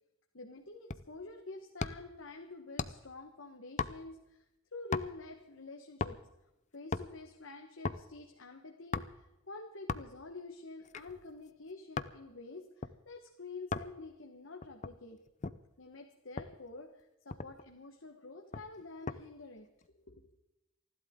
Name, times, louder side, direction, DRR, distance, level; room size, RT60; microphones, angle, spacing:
voice 1, 0.3-4.5 4.7-6.2 6.7-15.2 15.8-20.3, left 3 dB, 65° left, 3 dB, 1.5 m, -48 dB
sound 1, 0.9-1.2 1.8-2.2 2.8-3.1 3.8-4.3 4.9-5.3 6.0-6.4 6.7-7.1 7.8-8.1 8.9-9.3 9.9-10.3 10.8-12.2 12.8-13.0 13.7-14.0 14.6-15.6 16.4-16.6 17.0-17.1 17.3-17.7 18.5-19.2 19.6-19.9, left 4 dB, 35° left, 0.6 m, -38 dB
28.5 x 12.0 x 3.8 m, 0.92 s
head